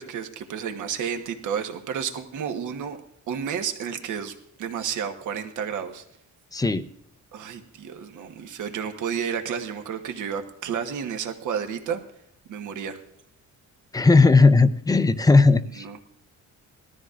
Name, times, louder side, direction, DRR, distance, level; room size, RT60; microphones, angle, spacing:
voice 1, 0.0-3.0 3.3-6.0 7.3-12.0 12.5-13.0 15.7-16.0, right 7 dB, 75° right, 6 dB, 1.3 m, -31 dB
voice 2, 6.5-6.8 13.9-16.0, left 3 dB, 10° left, 12 dB, 0.5 m, -17 dB
19.5 x 13.5 x 2.5 m, 0.75 s
cardioid pair, 145°, 31 cm